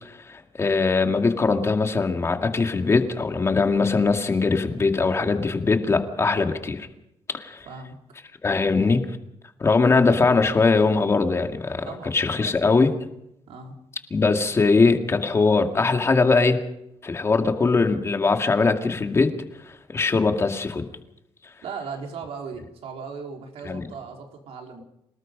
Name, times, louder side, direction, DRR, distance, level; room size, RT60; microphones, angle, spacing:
voice 1, 0.0-6.9 7.3-7.7 8.4-9.0 9.6-11.9 12.1-12.9 14.1-16.6 17.0-19.3 19.7-20.8 23.7-23.8, left 4 dB, 25° left, 5 dB, 2.1 m, -21 dB
voice 2, 7.7-8.0 11.8-12.7 13.5-13.8 21.6-24.8, right 5 dB, 80° right, 2 dB, 4.0 m, -37 dB
27.5 x 19.0 x 5.3 m, 0.81 s
cardioid pair, 150°, 10 cm